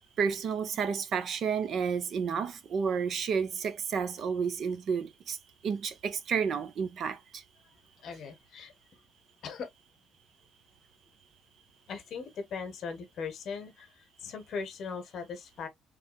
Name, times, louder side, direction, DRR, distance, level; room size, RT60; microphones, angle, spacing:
voice 1, 0.2-5.4 5.6-7.2, right 6 dB, 40° right, 0.6 m, -31 dB
voice 2, 8.0-8.7 9.4-9.7 11.9-15.7, left 5 dB, 40° left, 1.3 m, -39 dB
5.8 x 3.4 x 2.3 m
cardioid pair, 175°, 0 cm